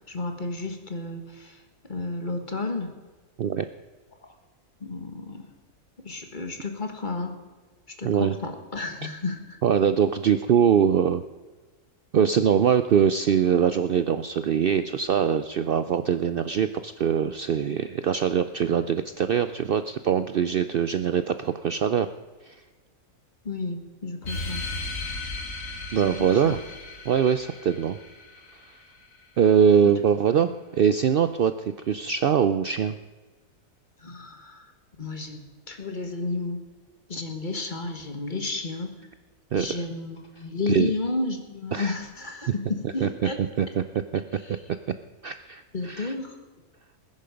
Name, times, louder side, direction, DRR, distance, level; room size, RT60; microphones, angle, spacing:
voice 1, 0.1-1.6 1.9-2.9 4.8-5.5 6.0-7.4 8.0-9.6 23.4-24.6 26.0-26.6 30.4-30.5 34.0-34.7 35.0-36.6 37.1-39.0 39.5-43.4 44.3-44.6 45.7-46.4, left 3 dB, 30° left, 5 dB, 1.7 m, -32 dB
voice 2, 8.0-8.3 9.6-11.2 12.1-22.1 22.4-22.6 25.9-26.6 27.0-28.0 29.4-32.9 39.5-39.7 40.7-40.9 41.7-42.0 43.0-43.1 43.6-43.8 44.1-44.2 44.5-44.6 45.2-46.1, right 8 dB, 80° right, 11 dB, 0.5 m, -22 dB
sound 1, 24.2-29.3, left 3 dB, 60° left, 2.1 m, -36 dB
19.5 x 10.5 x 5.1 m, 1.3 s
omnidirectional pair, 1.6 m